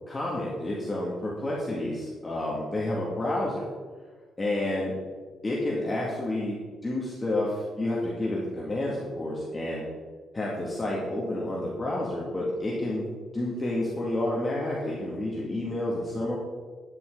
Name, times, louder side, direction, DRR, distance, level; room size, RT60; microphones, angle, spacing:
voice 1, 0.1-3.7 4.4-4.9 5.4-9.8 10.3-13.1 13.3-16.4, left 1 dB, 25° left, -4 dB, 2.2 m, -30 dB
10.5 x 10.0 x 3.9 m, 1.4 s
cardioid pair, 90°, 0 cm